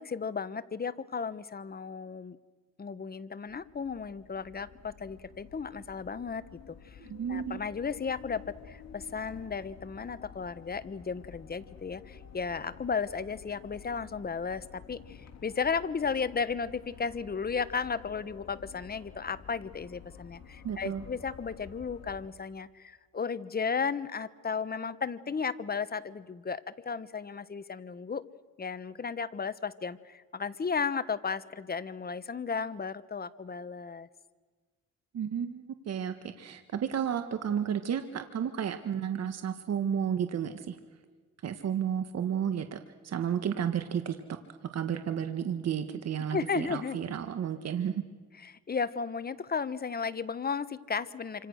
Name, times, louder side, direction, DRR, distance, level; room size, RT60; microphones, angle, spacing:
voice 1, 0.0-2.4 2.8-7.0 7.3-28.2 28.6-34.1 46.3-47.0 48.4-51.5, left 5 dB, 30° left, 14 dB, 1.2 m, -34 dB
sound 1, 3.5-22.3, left 7 dB, 60° left, 3.6 m, -51 dB
voice 2, 7.1-7.6 20.6-21.0 35.1-40.8 41.4-44.2 44.7-48.0, right 8 dB, 55° right, 8 dB, 1.6 m, -32 dB
28.0 x 26.0 x 6.5 m, 1.4 s
cardioid pair, 90°, 30 cm